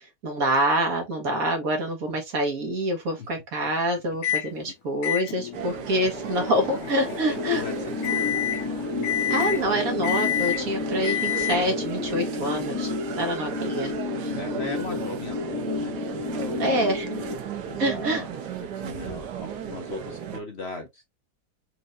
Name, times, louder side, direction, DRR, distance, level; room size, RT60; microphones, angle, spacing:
voice 1, 0.0-7.6 9.3-13.9 16.6-17.1 17.8-18.2, equal, 60° right, 1.6 m, -26 dB
Microwave oven, 4.2-4.5 5.0-11.9, left 11 dB, 75° left, 1.2 m, -30 dB
sound 1, 5.5-20.4, right 8 dB, 85° right, 1.5 m, -35 dB
sound 2, 7.4-17.4, left 4 dB, 10° left, 1.2 m, -31 dB
voice 2, 14.2-16.9 17.6-21.0, left 3 dB, 50° left, 0.9 m, -39 dB
4.4 x 2.6 x 2.5 m
omnidirectional pair, 1.7 m